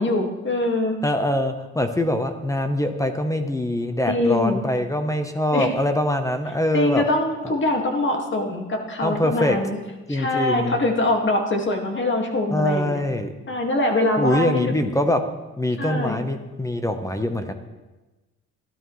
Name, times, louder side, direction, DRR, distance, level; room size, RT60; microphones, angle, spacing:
voice 1, 0.0-1.0 4.1-4.6 5.5-5.7 6.7-9.8 10.1-13.0 13.5-14.8 15.8-16.2, left 2 dB, 40° left, 2 dB, 2.0 m, -23 dB
voice 2, 1.0-7.0 9.0-9.6 10.1-10.8 12.5-13.3 14.2-15.2 15.6-17.5, left 1 dB, 10° left, 7 dB, 1.0 m, -23 dB
14.0 x 12.0 x 3.2 m, 1.1 s
cardioid pair, 90°, 30 cm